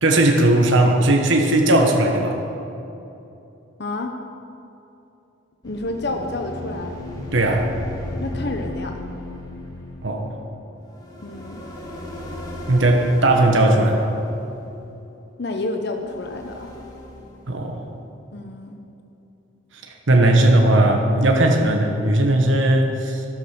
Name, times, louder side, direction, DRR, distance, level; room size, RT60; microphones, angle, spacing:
voice 1, 0.0-2.4 7.3-7.7 10.0-10.3 12.7-14.1 17.5-17.8 20.1-23.3, right 1 dB, 70° right, 2 dB, 1.3 m, -17 dB
voice 2, 3.8-4.1 5.6-7.0 8.2-9.0 11.2-11.6 15.4-16.7 18.3-18.8, left 2 dB, 55° left, 4 dB, 0.8 m, -29 dB
sound 1, 5.6-15.2 15.9-17.9, left 1 dB, 20° left, 1.8 m, -35 dB
13.0 x 11.5 x 6.0 m, 2.8 s
head